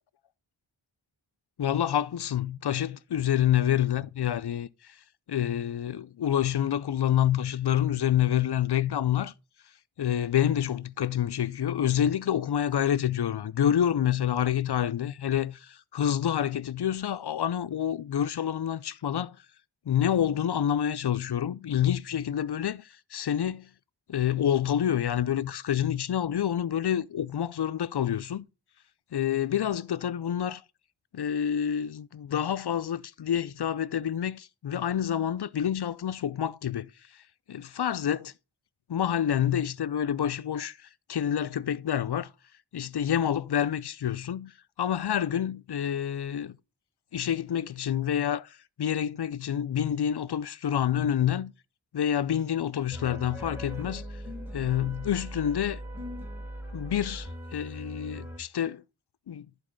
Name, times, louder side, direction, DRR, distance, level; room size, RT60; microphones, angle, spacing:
voice 1, 1.6-4.7 5.3-9.3 10.0-19.4 19.9-23.7 24.1-28.4 29.1-30.6 31.1-36.9 37.5-38.3 38.9-40.8 41.1-42.3 42.7-44.5 44.8-46.6 47.1-51.5 51.9-54.0 54.5-55.8 56.7-58.8 59.3-59.5, left 10 dB, 55° left, 0.5 m, -28 dB
sound 1, 52.9-58.4, equal, 5° right, 2.8 m, -39 dB
11.0 x 4.1 x 5.1 m
wide cardioid pair, 95°, 47 cm